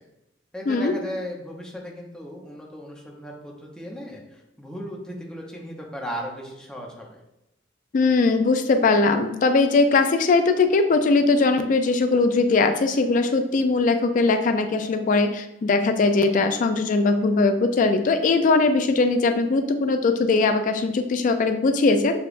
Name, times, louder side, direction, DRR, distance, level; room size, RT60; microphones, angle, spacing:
voice 1, 0.5-7.2, equal, 5° left, -2 dB, 0.6 m, -36 dB
voice 2, 7.9-22.2, left 3 dB, 45° left, 7 dB, 0.3 m, -20 dB
6.8 x 2.3 x 2.5 m, 0.90 s
head